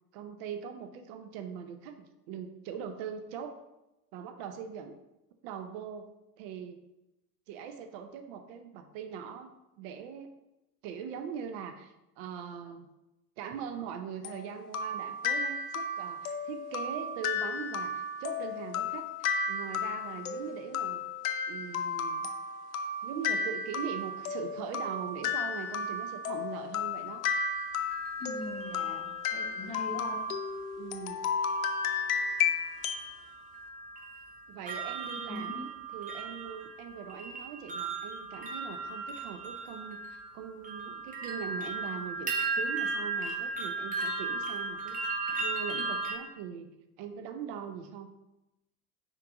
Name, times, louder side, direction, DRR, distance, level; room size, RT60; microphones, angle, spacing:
voice 1, 0.1-3.6 4.1-5.0 5.4-6.1 6.4-6.8 7.5-9.5 9.8-10.3 10.8-12.9 13.4-21.0 21.5-22.3 23.0-27.2 29.6-30.0 30.8-31.2 34.5-35.7 35.9-45.0 45.4-46.7 47.0-48.1, right 7 dB, 40° right, 7 dB, 0.7 m, -41 dB
sound 1, 14.2-33.1, left 5 dB, 65° left, 0.7 m, -33 dB
sound 2, 27.5-30.3 31.4-31.8 32.1-46.2, right 3 dB, 20° right, 1.0 m, -37 dB
voice 2, 28.2-30.2 35.2-35.7, left 2 dB, 15° left, 3 dB, 0.8 m, -41 dB
5.8 x 4.6 x 3.8 m, 0.93 s
figure-of-eight pair, 85°, 46 cm